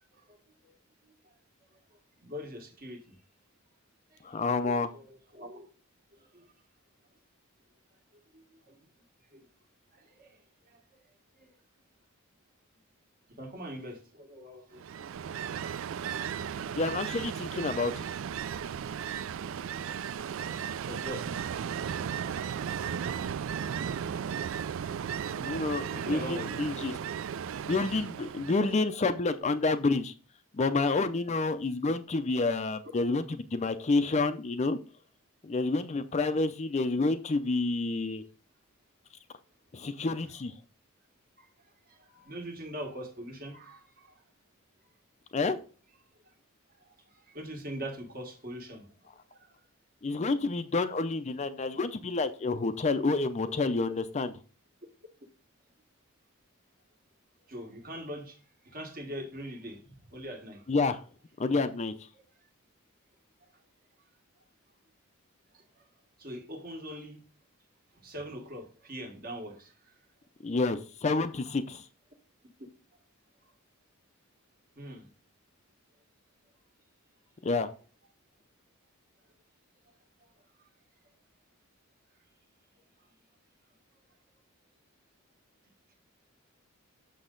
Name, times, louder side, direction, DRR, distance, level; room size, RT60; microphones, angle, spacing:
voice 1, 0.1-0.7 1.0-1.4 1.7-3.2 4.1-5.7 6.1-6.5 8.1-8.9 9.3-9.5 9.9-11.0 11.4-11.6 13.4-16.8 19.8-21.4 25.9-26.6 41.4-44.2 46.2-46.3 46.8-49.7 53.5-53.6 57.5-60.7 62.1-62.5 63.4-63.5 65.5-65.9 66.2-67.2 67.9-70.0 74.8-75.1 80.6-80.7 82.8-83.1, equal, 45° right, 1.6 m, -44 dB
voice 2, 4.2-4.9 16.8-18.0 25.3-26.9 27.6-30.1 30.5-33.2 33.5-34.8 35.4-38.2 39.7-40.6 45.3-45.6 50.0-54.3 60.7-61.0 61.4-61.9 70.4-71.8 77.4-77.7, left 3 dB, 30° left, 0.4 m, -29 dB
Ocean, 14.8-28.9, right 8 dB, 65° right, 0.3 m, -35 dB
6.5 x 6.2 x 3.8 m
head